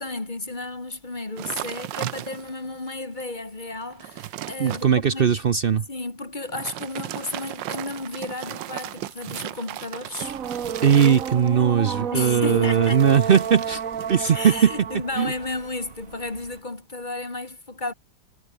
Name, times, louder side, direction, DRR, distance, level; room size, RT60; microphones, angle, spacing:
voice 1, 0.0-5.3 5.9-10.4 12.1-13.0 14.3-17.9, left 2 dB, 25° left, 2.6 m, -33 dB
sound 1, 1.4-2.7 3.2-3.3 3.7-4.9 6.4-11.7 12.7-14.4 14.7-15.1, right 14 dB, 75° right, 1.4 m, -36 dB
voice 2, 4.6-5.9 10.8-13.8 14.1-14.9 15.1-15.3, right 7 dB, 90° right, 0.5 m, -19 dB
sound 2, 10.2-16.6, right 7 dB, 50° right, 1.6 m, -32 dB
omnidirectional pair, 2.1 m